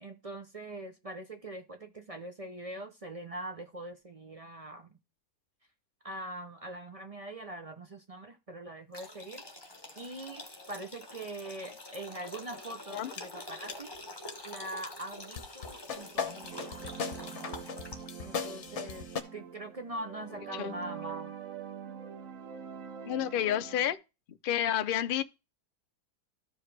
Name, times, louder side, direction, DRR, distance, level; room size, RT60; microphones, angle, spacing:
voice 1, 0.0-5.0 6.0-9.4 9.9-13.9 14.4-17.7 18.2-21.4, right 1 dB, 40° right, 0.5 m, -43 dB
sound 1, 8.9-18.2, left 2 dB, 15° left, 1.2 m, -47 dB
sound 2, 13.2-13.3 13.7-14.0 14.3-14.4 14.8-14.9 15.4-19.2, left 6 dB, 55° left, 1.2 m, -38 dB
sound 3, 16.0-23.9, right 7 dB, 65° right, 1.3 m, -44 dB
voice 2, 23.1-24.0 24.3-25.2, left 10 dB, 80° left, 0.4 m, -30 dB
13.5 x 4.9 x 3.2 m
omnidirectional pair, 1.6 m